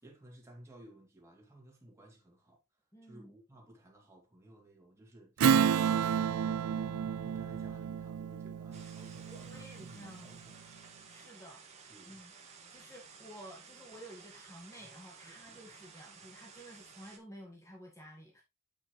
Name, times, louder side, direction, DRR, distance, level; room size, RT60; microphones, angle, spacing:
voice 1, 0.0-2.6 3.0-5.6 6.2-10.6 11.9-12.2 14.8-14.9 15.2-15.6, right 1 dB, 15° right, 3.0 m, -57 dB
voice 2, 2.9-3.3 9.1-10.4 11.1-11.6 12.1-12.3 12.7-18.4, equal, 15° left, 1.7 m, -52 dB
Strum, 5.4-10.3, right 7 dB, 90° right, 0.4 m, -31 dB
sound 1, 5.9-8.7, right 2 dB, 80° left, 3.1 m, -55 dB
sound 2, 8.7-17.2, right 5 dB, 30° right, 1.7 m, -54 dB
8.8 x 6.0 x 3.2 m
head